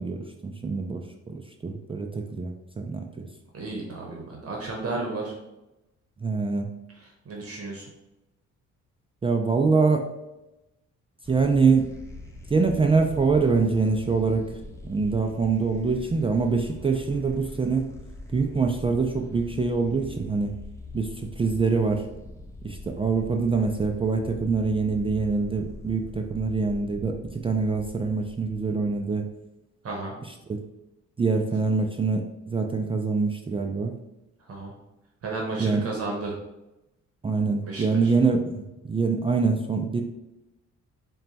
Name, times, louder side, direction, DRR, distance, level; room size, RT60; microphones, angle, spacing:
voice 1, 0.0-3.3 6.2-6.7 9.2-10.1 11.3-11.9 12.5-14.5 14.8-17.9 18.3-20.5 20.9-22.0 22.6-29.3 30.2-30.6 31.2-34.0 35.6-35.8 37.2-40.0, right 4 dB, 20° right, 3 dB, 0.3 m, -25 dB
voice 2, 3.5-5.3 6.9-7.9 29.8-30.2 34.5-34.7 35.2-36.4 37.6-38.1, right 3 dB, 50° right, -1 dB, 0.9 m, -33 dB
sound 1, 11.2-29.3, left 2 dB, 10° left, 0.7 m, -43 dB
4.1 x 2.3 x 3.9 m, 0.94 s
cardioid pair, 90°, 30 cm